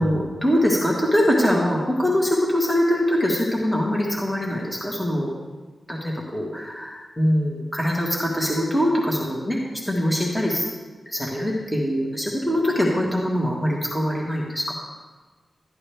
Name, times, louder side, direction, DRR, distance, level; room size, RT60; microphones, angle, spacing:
voice 1, 0.0-5.3 5.9-9.6 9.9-10.6 11.1-14.7, equal, 10° left, -3 dB, 1.6 m, -23 dB
12.5 x 11.0 x 3.4 m, 1.3 s
wide cardioid pair, 135°, 0 cm